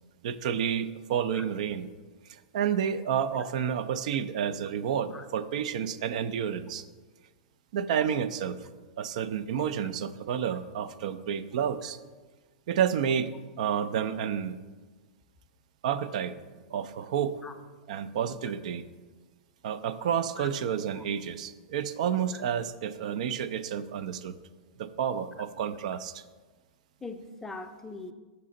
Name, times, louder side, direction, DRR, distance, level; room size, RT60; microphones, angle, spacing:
voice 1, 0.2-1.9 2.3-6.8 7.7-8.6 9.0-12.0 12.7-13.3 13.6-14.6 15.8-16.4 16.7-17.3 17.9-18.9 19.6-24.3 24.8-26.2, right 8 dB, 65° right, 14 dB, 0.4 m, -30 dB
voice 2, 27.0-28.1, left 3 dB, 10° left, 6 dB, 0.5 m, -41 dB
6.6 x 4.2 x 3.8 m, 1.3 s
hypercardioid pair, 115°, 4 cm